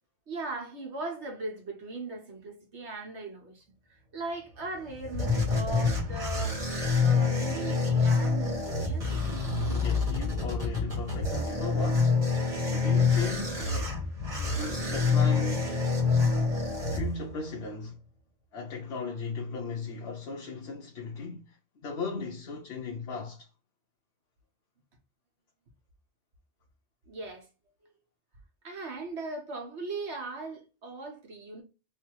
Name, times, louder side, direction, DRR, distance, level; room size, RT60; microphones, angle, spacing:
voice 1, 0.3-6.6 7.0-9.1 27.1-27.5 28.6-31.6, right 3 dB, 80° right, 1.5 m, -39 dB
sound 1, 4.6-17.6, left 4 dB, 35° right, 1.5 m, -27 dB
voice 2, 9.7-12.2 12.7-14.0 14.4-15.8 16.9-18.0 18.5-23.5, left 4 dB, 70° left, 1.0 m, -37 dB
3.3 x 2.8 x 4.6 m
omnidirectional pair, 1.1 m